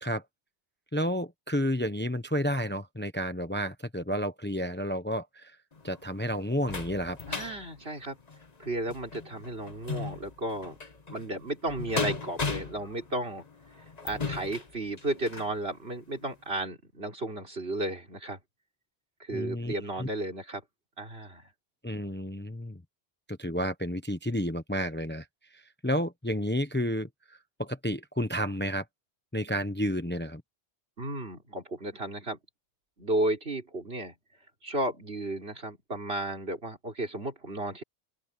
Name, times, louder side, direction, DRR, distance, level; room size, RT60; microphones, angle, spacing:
voice 1, 0.9-5.6 5.8-7.2 19.3-20.1 21.8-22.8 23.3-25.3 25.5-28.8 29.3-30.4, equal, 10° left, 1.0 m, -31 dB
sound 1, 5.7-15.6 16.1-16.2 16.6-16.7, left 4 dB, 35° left, 1.5 m, -38 dB
voice 2, 7.3-8.2 8.6-10.8 11.1-13.4 14.0-18.4 19.2-20.6 21.0-21.5 31.0-32.4 33.0-34.1 34.6-37.8, right 1 dB, 60° right, 4.3 m, -33 dB
open air
omnidirectional pair, 1.2 m